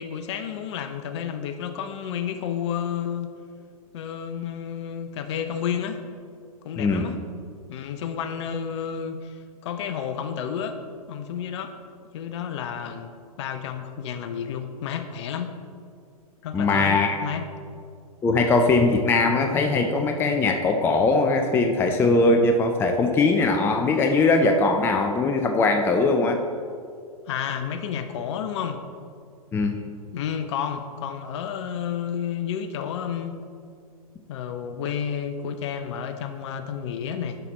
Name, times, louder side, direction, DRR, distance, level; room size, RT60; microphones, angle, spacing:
voice 1, 0.0-3.3 3.9-6.0 6.6-7.2 7.7-10.8 11.1-11.7 12.1-13.1 13.4-15.6 16.4-17.4 27.3-28.8 30.1-33.4 34.3-37.4, left 8 dB, 50° left, 9 dB, 0.6 m, -31 dB
voice 2, 6.8-7.1 16.5-17.2 18.2-26.4 29.5-29.8, left 3 dB, 10° left, 5 dB, 0.4 m, -21 dB
11.5 x 5.7 x 3.0 m, 2.3 s
figure-of-eight pair, 110°, 19 cm